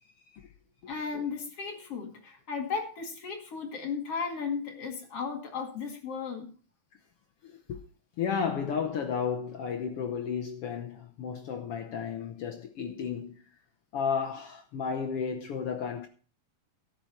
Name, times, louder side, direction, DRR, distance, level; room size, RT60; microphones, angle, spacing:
voice 1, 0.9-6.5, left 5 dB, 45° left, 2.7 m, -35 dB
voice 2, 8.2-13.4 13.9-16.1, left 6 dB, 80° left, 1.3 m, -33 dB
13.0 x 9.7 x 4.4 m
omnidirectional pair, 3.9 m